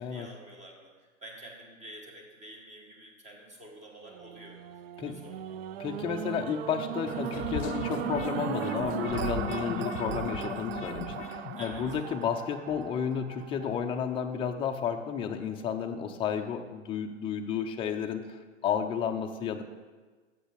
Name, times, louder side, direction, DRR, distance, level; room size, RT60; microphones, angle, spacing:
voice 1, 0.0-5.6 11.5-11.9, right 1 dB, 20° right, 0 dB, 1.8 m, -49 dB
sound 1, 4.0-14.3 14.9-15.0, right 11 dB, 55° right, 0.5 m, -37 dB
voice 2, 5.8-19.6, left 7 dB, 15° left, 4 dB, 0.4 m, -32 dB
sound 2, 7.1-12.0, left 7 dB, 40° left, 0.8 m, -38 dB
7.5 x 5.0 x 6.4 m, 1.4 s
hypercardioid pair, 115°, 38 cm